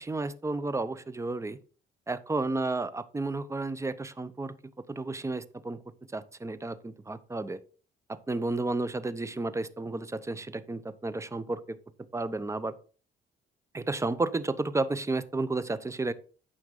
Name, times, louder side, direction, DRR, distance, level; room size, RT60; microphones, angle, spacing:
voice 1, 0.0-1.6 2.1-4.6 4.9-5.8 6.1-7.6 8.1-11.8 12.1-12.8 13.7-16.1, right 2 dB, 15° right, 15 dB, 0.7 m, -32 dB
9.2 x 6.3 x 3.8 m, 0.40 s
cardioid pair, 90°, 20 cm